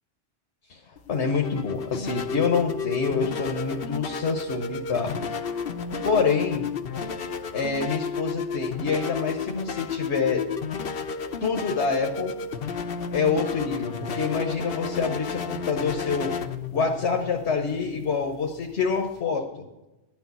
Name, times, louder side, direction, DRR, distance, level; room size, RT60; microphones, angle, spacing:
voice 1, 0.7-5.1 6.0-6.6 7.5-10.4 11.4-12.3 13.1-16.3 16.7-19.7, left 5 dB, 85° left, 3 dB, 1.4 m, -26 dB
sound 1, 1.0-19.2, left 5 dB, 65° left, 1.0 m, -32 dB
11.5 x 7.0 x 8.3 m, 1.0 s
omnidirectional pair, 1.1 m